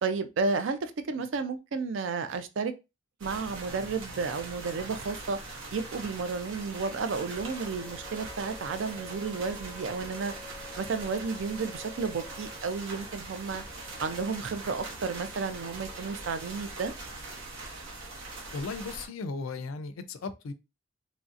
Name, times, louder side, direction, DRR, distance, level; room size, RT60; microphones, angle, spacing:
voice 1, 0.0-2.7 3.2-5.4 5.7-10.3 10.8-13.6 14.0-16.9, right 4 dB, 65° right, 0.4 m, -32 dB
sound 1, 3.2-19.1, right 2 dB, 85° right, 0.9 m, -42 dB
sound 2, 7.3-16.4, left 2 dB, 10° right, 0.9 m, -51 dB
voice 2, 18.5-20.5, left 3 dB, 80° left, 0.4 m, -36 dB
3.0 x 2.7 x 2.4 m
head